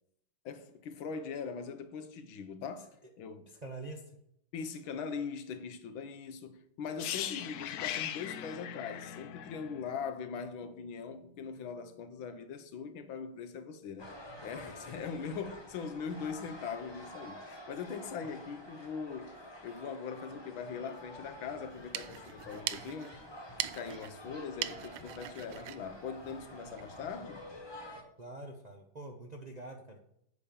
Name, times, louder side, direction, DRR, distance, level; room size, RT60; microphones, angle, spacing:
voice 1, 0.5-3.5 4.5-14.1 14.4-19.4 19.6-23.2 23.6-27.4, left 6 dB, 85° left, 1.7 m, -41 dB
voice 2, 2.8-3.1 3.5-4.2 18.2-18.3 28.2-30.0, right 2 dB, 45° right, 0.5 m, -46 dB
sound 1, 7.0-10.8 11.1-11.3, left 11 dB, 70° left, 0.9 m, -39 dB
sound 2, 14.0-28.0, left 1 dB, 15° left, 1.2 m, -49 dB
sound 3, 21.6-27.0, right 13 dB, 75° right, 1.3 m, -42 dB
8.4 x 5.2 x 6.9 m
omnidirectional pair, 2.1 m